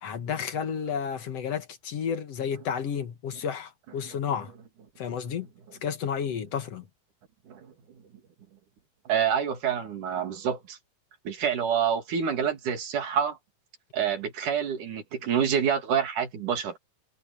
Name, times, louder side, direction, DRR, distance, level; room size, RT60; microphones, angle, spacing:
voice 1, 0.0-4.5 5.0-5.5 5.8-6.8, left 7 dB, 60° left, 2.3 m, -31 dB
voice 2, 9.1-10.8 11.3-13.4 13.9-16.8, right 8 dB, 80° right, 3.9 m, -27 dB
omnidirectional pair, 3.5 m